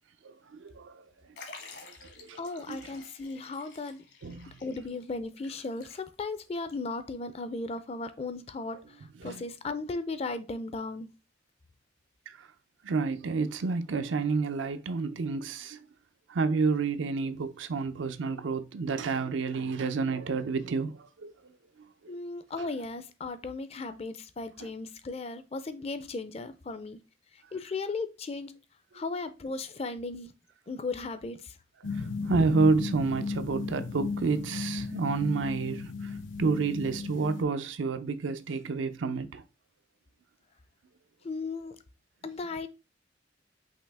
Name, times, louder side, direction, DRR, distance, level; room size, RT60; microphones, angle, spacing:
voice 1, 0.2-1.0 2.2-2.8 4.2-4.6 8.7-8.8 9.2-9.4 12.3-12.5 12.8-15.8 16.3-21.3 21.8-22.1 24.6-24.7 32.0-39.4, right 4 dB, 85° right, 0.5 m, -30 dB
Liquid, 1.4-6.4 6.7-6.8 7.8-7.9, left 4 dB, 65° left, 1.3 m, -50 dB
voice 2, 2.4-4.0 4.6-8.8 9.2-11.1 22.1-27.0 27.5-28.5 28.9-30.3 30.7-31.5 41.2-41.8 42.2-42.7, left 3 dB, 35° left, 0.4 m, -36 dB
sound 1, 31.8-37.4, left 4 dB, 85° left, 0.7 m, -35 dB
5.5 x 2.8 x 3.3 m
head